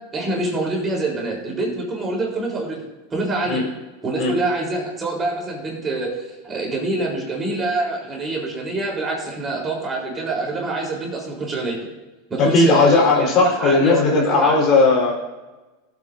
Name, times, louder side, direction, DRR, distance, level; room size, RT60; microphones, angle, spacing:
voice 1, 0.1-2.8 3.1-3.6 4.0-6.2 6.4-11.8 12.3-14.6, right 2 dB, 25° right, -2 dB, 3.9 m, -25 dB
voice 2, 12.4-15.1, left 3 dB, 45° left, -3 dB, 4.1 m, -16 dB
18.5 x 8.3 x 2.7 m, 1.1 s
hypercardioid pair, 100°, 0 cm